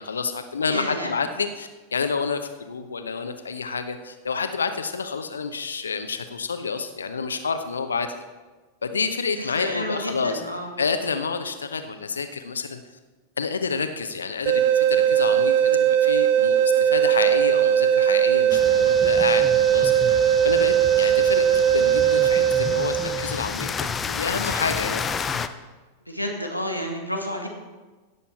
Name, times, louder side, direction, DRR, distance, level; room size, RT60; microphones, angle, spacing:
voice 1, 0.0-8.2 8.8-10.4 10.8-12.8 13.4-19.4 19.7-19.9 20.4-25.1, left 5 dB, 70° left, 8 dB, 0.9 m, -29 dB
voice 2, 0.7-1.1 9.4-10.7 26.1-27.5, equal, 90° right, 2 dB, 1.8 m, -30 dB
sound 1, 14.5-23.4, right 9 dB, 50° right, 0.4 m, -19 dB
sound 2, 18.5-25.5, left 6 dB, 20° left, 0.6 m, -31 dB
17.0 x 6.9 x 4.5 m, 1.3 s
figure-of-eight pair, 90°, 0 cm